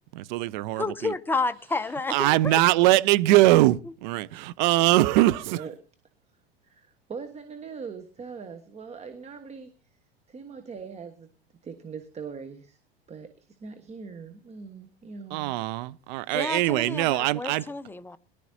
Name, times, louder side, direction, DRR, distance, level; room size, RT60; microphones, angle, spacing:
voice 1, 0.1-1.1 2.1-5.6 15.3-17.6, right 17 dB, 50° right, 0.7 m, -22 dB
voice 2, 0.8-2.6 16.3-18.2, left 3 dB, 5° left, 0.6 m, -30 dB
voice 3, 6.6-9.7 10.3-11.3 11.6-12.8 13.1-13.3 13.6-15.6, right 5 dB, 20° right, 1.4 m, -41 dB
22.0 x 11.5 x 2.7 m
figure-of-eight pair, 80°, 31 cm